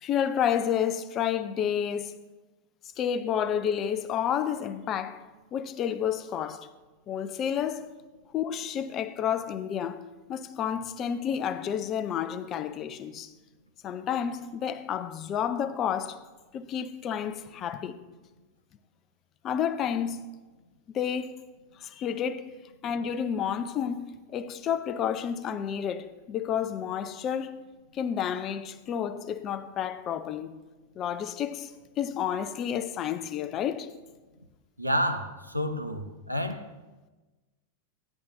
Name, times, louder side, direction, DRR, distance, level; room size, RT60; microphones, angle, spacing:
voice 1, 0.0-2.2 3.0-5.2 5.5-6.7 7.1-7.9 8.3-13.3 13.8-16.2 16.5-18.0 19.4-20.2 20.9-21.4 21.8-22.5 22.8-27.6 27.9-30.5 31.0-33.9, left 8 dB, 30° left, 0.5 m, -30 dB
voice 2, 34.8-36.7, equal, 90° right, 0.7 m, -29 dB
15.0 x 10.0 x 2.7 m
figure-of-eight pair, 90°, 0 cm